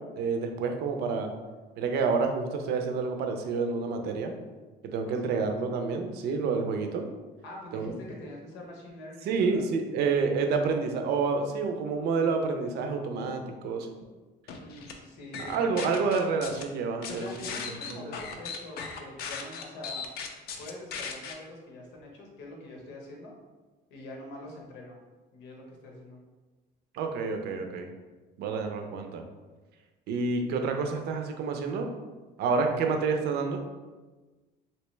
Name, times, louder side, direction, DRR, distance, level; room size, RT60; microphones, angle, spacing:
voice 1, 0.2-1.3 1.8-4.3 4.8-7.0 7.7-7.9 9.2-13.9 15.5-17.3 17.9-18.1 26.9-27.9 28.4-29.2 30.1-31.9 32.4-33.6, right 4 dB, 65° right, 5 dB, 0.5 m, -28 dB
voice 2, 5.0-5.4 7.4-9.6 14.6-16.0 17.1-20.1 20.6-23.3 23.9-25.0 25.3-26.2, left 1 dB, 85° left, 0 dB, 0.9 m, -44 dB
sound 1, 14.5-14.9 15.3-16.6 17.0-21.3, left 6 dB, 60° left, 0.5 m, -38 dB
3.3 x 2.8 x 3.1 m, 1.3 s
cardioid pair, 145°, 18 cm